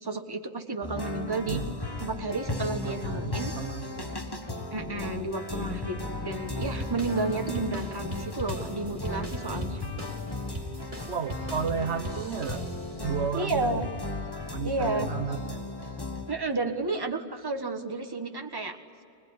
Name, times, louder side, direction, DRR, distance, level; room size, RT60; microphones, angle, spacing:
voice 1, 0.0-1.6 2.0-3.5 4.7-9.8 13.3-13.9 14.6-15.1 16.3-18.8, right 3 dB, 20° right, 5 dB, 1.5 m, -31 dB
sound 1, 0.8-16.3, left 2 dB, 20° left, 1.7 m, -36 dB
voice 2, 2.8-4.1 11.0-12.7 13.0-13.9 14.5-15.6, right 6 dB, 80° right, 8 dB, 1.4 m, -33 dB
sound 2, 6.6-13.1, right 1 dB, 45° right, 3.4 m, -40 dB
25.0 x 21.5 x 9.7 m, 2.6 s
omnidirectional pair, 1.1 m